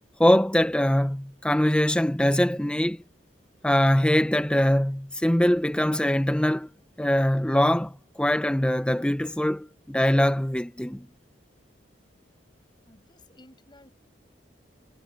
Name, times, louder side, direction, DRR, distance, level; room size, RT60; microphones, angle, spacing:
voice 1, 0.2-3.0 3.6-6.7 7.0-11.1, left 1 dB, 5° left, 0.6 m, -22 dB
voice 2, 12.8-13.9, left 1 dB, 25° left, 6.4 m, -54 dB
head